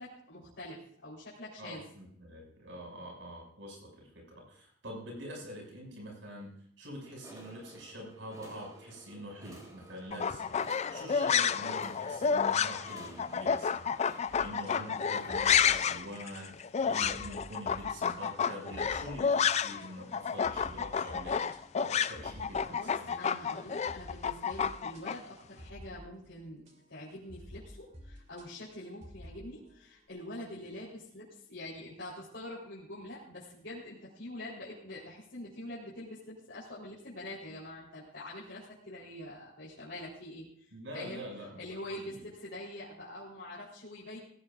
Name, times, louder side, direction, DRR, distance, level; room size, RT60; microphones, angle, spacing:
voice 1, 0.0-1.9 14.2-14.3 22.7-26.6 26.9-41.2 41.6-44.2, left 1 dB, 65° left, -8 dB, 3.9 m, -45 dB
voice 2, 1.6-13.9 14.2-21.4 21.7-23.2 40.7-41.6 42.1-42.2, equal, 75° right, -1 dB, 6.4 m, -45 dB
sound 1, 7.0-15.7, right 1 dB, 20° right, 3.5 m, -55 dB
sound 2, 10.1-19.9 20.1-25.2, left 7 dB, 35° left, 0.4 m, -30 dB
sound 3, 14.3-30.0, equal, 40° right, 3.1 m, -52 dB
18.5 x 16.5 x 2.5 m, 0.66 s
head